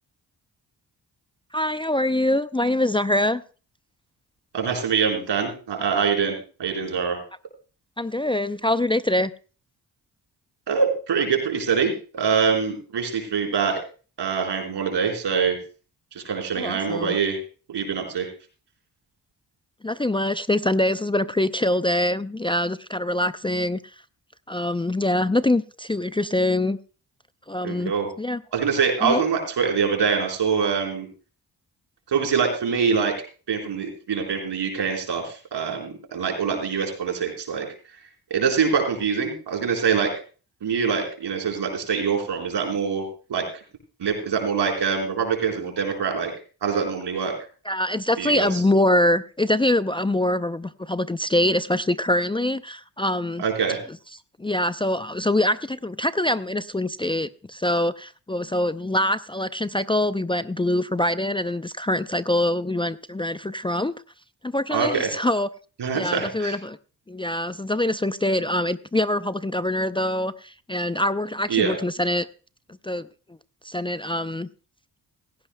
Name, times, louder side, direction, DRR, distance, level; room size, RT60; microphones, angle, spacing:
voice 1, 1.5-3.4 8.0-9.3 16.5-17.2 19.8-23.8 24.5-26.8 27.5-27.9 28.2-28.4 29.0-29.2 47.7-53.4 54.4-63.9 64.4-65.5 65.9-66.8 67.1-72.3 72.8-73.1 73.6-74.5, left 1 dB, 10° left, 13 dB, 0.5 m, -24 dB
voice 2, 4.5-7.2 10.7-13.8 14.2-15.6 16.1-17.4 17.7-18.3 27.6-28.1 28.5-31.1 32.1-33.1 33.5-37.7 38.3-40.1 40.6-43.4 44.0-46.3 46.6-47.3 48.2-48.6 53.4-53.8 64.7-65.1 65.8-66.5 71.5-71.8, right 6 dB, 75° right, 3 dB, 4.4 m, -24 dB
17.0 x 15.5 x 2.2 m, 0.36 s
supercardioid pair, 50°, 42 cm